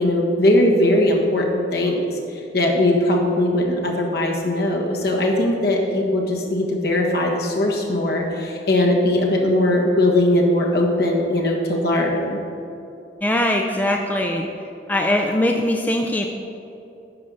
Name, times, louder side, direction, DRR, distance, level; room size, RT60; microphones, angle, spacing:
voice 1, 0.0-2.0 2.5-12.4, left 1 dB, 60° left, -1 dB, 1.4 m, -19 dB
voice 2, 13.2-14.5 14.9-16.3, left 1 dB, 10° left, 2 dB, 0.5 m, -21 dB
9.6 x 6.4 x 5.5 m, 2.8 s
head